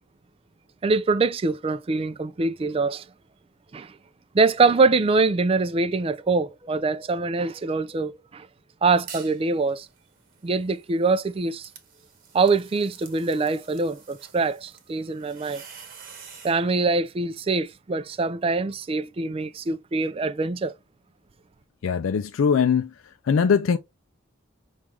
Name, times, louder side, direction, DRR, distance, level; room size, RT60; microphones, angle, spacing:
voice 1, 0.8-3.1 3.7-4.0 4.3-8.5 8.8-9.9 10.4-11.7 12.3-15.6 16.4-20.7, right 3 dB, 30° right, 0.3 m, -24 dB
sound 1, 8.9-9.4 9.8-16.6, right 6 dB, 45° right, 1.0 m, -47 dB
voice 2, 21.8-22.9 23.2-23.8, left 6 dB, 85° left, 0.4 m, -21 dB
6.1 x 2.4 x 3.3 m
head